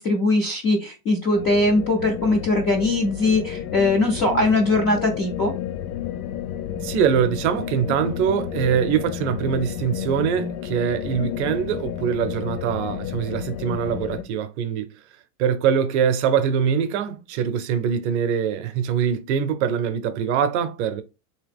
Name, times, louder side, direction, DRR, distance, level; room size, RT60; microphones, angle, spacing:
voice 1, 0.0-5.5, left 2 dB, 20° left, 0.3 m, -21 dB
sound 1, 1.3-14.2, left 9 dB, 80° left, 0.6 m, -31 dB
voice 2, 6.8-14.9 15.4-21.0, right 8 dB, 50° right, 0.6 m, -23 dB
3.4 x 2.9 x 3.4 m
supercardioid pair, 155°, 45 cm